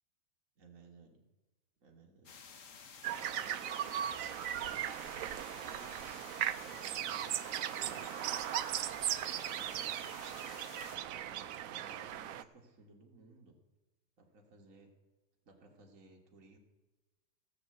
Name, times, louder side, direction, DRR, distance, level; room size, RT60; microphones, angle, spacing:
voice 1, 0.6-1.2 1.8-2.4 3.4-3.5 4.4-6.0 6.6-7.4 7.8-8.4 9.0-10.2 10.8-13.6 14.2-14.9 15.5-16.6, right 3 dB, 50° right, 0 dB, 2.0 m, -59 dB
sound 1, 2.3-11.0, left 6 dB, 55° left, 1.3 m, -53 dB
sound 2, 3.0-12.4, right 11 dB, 70° right, 0.8 m, -38 dB
16.0 x 6.5 x 7.9 m, 1.1 s
omnidirectional pair, 1.8 m